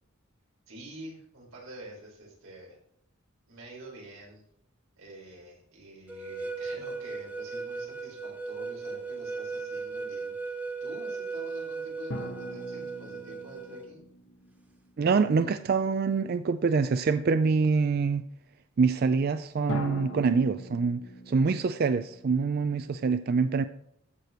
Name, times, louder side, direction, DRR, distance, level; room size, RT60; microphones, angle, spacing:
voice 1, 0.7-2.8 3.5-4.4 5.0-14.0, right 1 dB, 90° right, -2 dB, 4.5 m, -47 dB
sound 1, 6.1-13.9, right 4 dB, 5° right, 0.8 m, -37 dB
sound 2, 12.1-15.5 19.7-23.0, left 1 dB, 70° left, 1.3 m, -41 dB
voice 2, 15.0-18.2 18.8-23.6, right 4 dB, 45° right, 11 dB, 0.3 m, -25 dB
14.5 x 6.6 x 3.1 m, 0.74 s
head